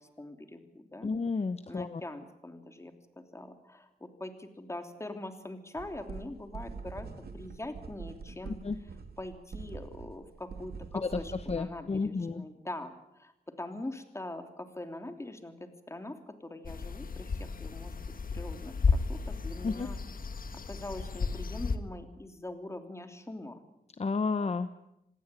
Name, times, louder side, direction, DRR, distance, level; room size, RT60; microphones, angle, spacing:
voice 1, 0.0-1.1 1.7-8.6 9.2-17.9 18.3-20.0 20.7-23.6, left 1 dB, 15° left, 7 dB, 3.1 m, -43 dB
voice 2, 1.0-2.0 8.5-8.8 11.0-11.2 11.5-12.5 19.6-19.9 24.0-24.7, left 4 dB, 40° left, 10 dB, 1.0 m, -32 dB
sound 1, 5.8-11.6, right 4 dB, 80° right, 2.8 m, -44 dB
sound 2, 16.6-21.8, left 4 dB, 60° left, 1.7 m, -33 dB
26.5 x 19.5 x 9.1 m, 0.83 s
wide cardioid pair, 140°, 16 cm